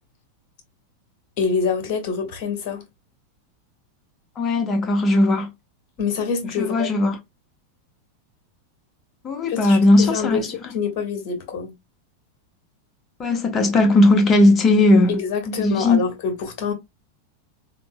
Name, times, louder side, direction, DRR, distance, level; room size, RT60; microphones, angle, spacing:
voice 1, 1.4-2.8 6.0-6.9 9.5-11.7 15.1-16.7, left 5 dB, 45° left, 1.4 m, -26 dB
voice 2, 4.4-5.5 6.6-7.2 9.2-10.5 13.2-15.2 15.5-16.0, left 2 dB, 25° left, 1.1 m, -17 dB
5.0 x 2.8 x 2.2 m
figure-of-eight pair, 90°, 0 cm